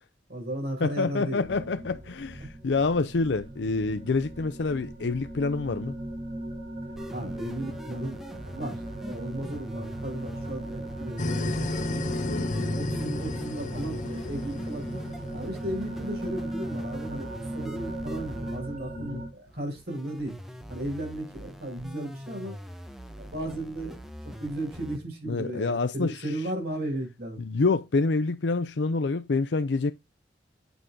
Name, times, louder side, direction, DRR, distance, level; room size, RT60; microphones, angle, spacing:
voice 1, 0.3-1.7 2.4-2.5 7.1-12.0 12.6-15.0 15.3-20.3 20.7-22.6 23.2-24.0 24.2-27.4, right 1 dB, 60° right, 5.5 m, -35 dB
voice 2, 0.8-5.9 12.2-12.5 19.0-19.2 25.3-26.3 27.4-29.9, left 3 dB, 80° left, 0.6 m, -27 dB
sound 1, 1.4-19.3, right 1 dB, 45° right, 3.2 m, -38 dB
sound 2, 7.0-25.0, equal, ahead, 1.4 m, -44 dB
sound 3, 11.2-16.0, left 2 dB, 45° left, 0.6 m, -32 dB
9.0 x 6.1 x 3.7 m
head